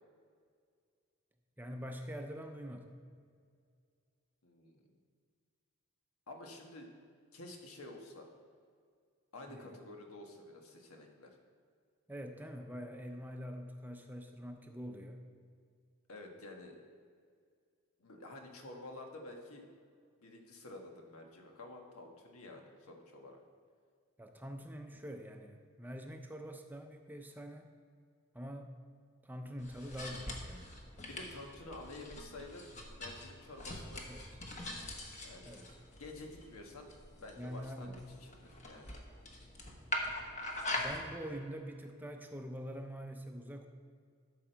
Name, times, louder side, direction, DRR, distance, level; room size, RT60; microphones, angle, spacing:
voice 1, 1.6-2.9 9.5-9.7 12.1-15.2 24.2-27.7 28.3-28.7 29.2-30.7 34.1-34.3 35.4-35.7 37.4-38.0 40.8-43.7, equal, 10° right, 4 dB, 0.6 m, -45 dB
voice 2, 4.4-4.8 6.3-6.9 7.3-8.3 9.3-11.3 16.1-16.8 18.0-19.7 20.2-23.4 31.1-32.7 33.0-34.1 35.2-35.6 35.9-36.9 37.2-37.9 38.2-38.9, left 2 dB, 90° left, 2 dB, 1.4 m, -50 dB
sound 1, 29.6-41.0, left 1 dB, 35° left, 1.2 m, -43 dB
12.5 x 6.2 x 4.5 m, 2.1 s
head